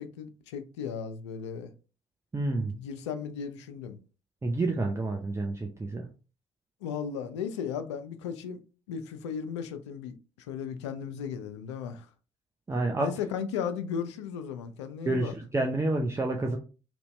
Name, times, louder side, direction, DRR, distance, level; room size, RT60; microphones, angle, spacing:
voice 1, 0.0-1.7 2.7-4.0 6.8-8.6 8.9-10.1 10.5-12.1 13.0-15.3, left 7 dB, 80° left, 0.4 m, -35 dB
voice 2, 2.3-2.7 4.4-6.0 12.7-13.1 15.1-16.6, right 2 dB, 20° right, 0.6 m, -29 dB
2.9 x 2.6 x 3.2 m
figure-of-eight pair, 45°, 15 cm